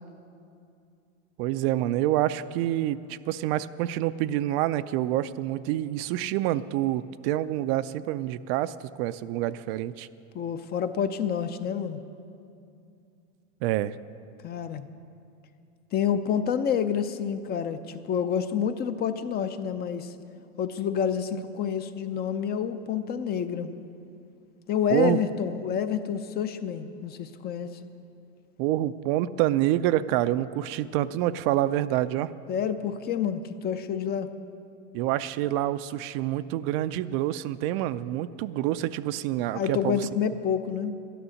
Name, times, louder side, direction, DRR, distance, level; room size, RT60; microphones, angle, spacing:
voice 1, 1.4-10.1 13.6-14.0 24.9-25.2 28.6-32.3 34.9-40.1, right 13 dB, 55° right, 14 dB, 0.4 m, -27 dB
voice 2, 10.3-12.0 14.4-14.9 15.9-20.1 20.6-23.7 24.7-27.7 32.5-34.3 39.5-41.0, left 8 dB, 30° left, 10 dB, 0.5 m, -28 dB
12.0 x 10.0 x 6.4 m, 2.5 s
supercardioid pair, 125°, 36 cm